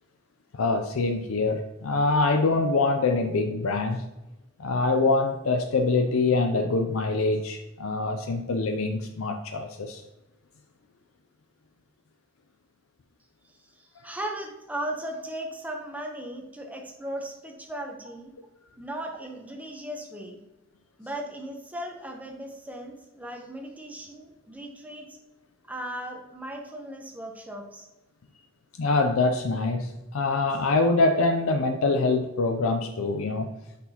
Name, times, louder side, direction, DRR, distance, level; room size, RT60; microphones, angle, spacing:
voice 1, 0.5-4.0 4.6-10.0 28.8-33.5, left 3 dB, 85° left, 5 dB, 0.5 m, -24 dB
voice 2, 13.5-18.3 18.8-20.4 21.0-25.1 25.7-27.9, right 1 dB, 5° right, 1 dB, 0.8 m, -37 dB
6.0 x 5.8 x 2.9 m, 0.98 s
head